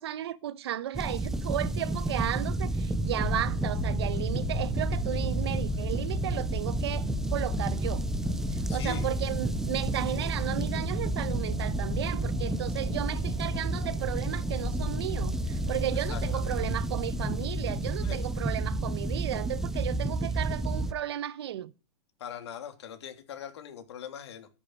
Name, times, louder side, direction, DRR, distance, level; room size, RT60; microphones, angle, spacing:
voice 1, 0.0-8.0 8.7-21.7, right 12 dB, 60° right, 1.1 m, -34 dB
sound 1, 0.9-20.9, right 2 dB, 5° right, 0.7 m, -31 dB
sound 2, 3.2-17.9, left 8 dB, 90° left, 2.0 m, -40 dB
voice 2, 8.7-9.1 15.9-16.6 18.0-18.2 22.2-24.5, left 9 dB, 65° left, 3.2 m, -41 dB
13.5 x 10.5 x 4.7 m
supercardioid pair, 180°, 15 cm